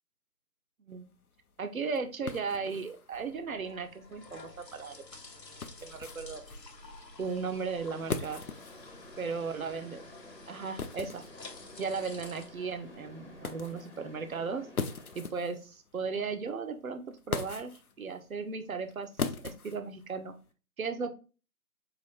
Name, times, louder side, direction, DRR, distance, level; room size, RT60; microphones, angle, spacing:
sound 1, 0.9-20.5, left 5 dB, 60° left, 0.5 m, -42 dB
voice 1, 1.6-5.0 5.5-6.4 7.2-8.4 9.2-10.0 10.5-11.2 11.8-14.7 15.2-19.1 19.4-20.3 20.8-21.1, right 5 dB, 60° right, 9 dB, 0.6 m, -36 dB
sound 2, 3.1-13.5, left 3 dB, 85° left, 0.9 m, -51 dB
sound 3, 7.8-15.3, left 1 dB, 45° left, 1.1 m, -52 dB
4.8 x 2.5 x 3.0 m, 0.34 s
figure-of-eight pair, 165°, 49 cm